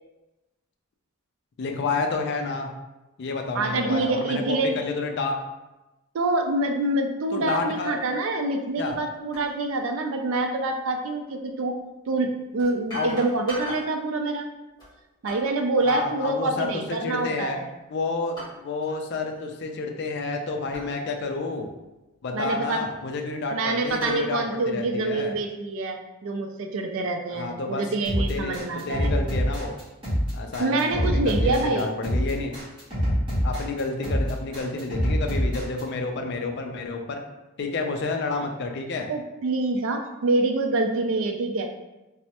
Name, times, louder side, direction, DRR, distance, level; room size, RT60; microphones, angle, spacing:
voice 1, 1.6-2.7 3.2-5.4 7.3-8.0 8.8-8.9 12.9-13.1 13.7-13.8 15.8-17.6 17.9-18.4 18.6-21.7 22.2-25.3 27.3-27.8 28.1-29.7 30.3-32.5 33.4-37.2 37.6-39.1, left 3 dB, 50° left, 4 dB, 0.3 m, -30 dB
voice 2, 3.5-4.7 6.1-11.8 12.1-14.5 15.2-17.7 22.3-22.8 23.5-29.1 30.6-31.9 39.1-41.7, right 2 dB, 65° right, 5 dB, 0.4 m, -26 dB
sound 1, 8.9-9.0 9.3-9.5 11.3-11.4 12.6-14.0 14.8-15.6 17.2-17.6 18.3-19.0 19.3-19.5 20.7-20.9 21.5-21.6 22.6-23.4 23.9-24.3, equal, 20° left, 1.2 m, -39 dB
sound 2, 28.0-35.8, equal, 25° right, 1.1 m, -25 dB
3.2 x 2.0 x 2.8 m, 1.0 s
head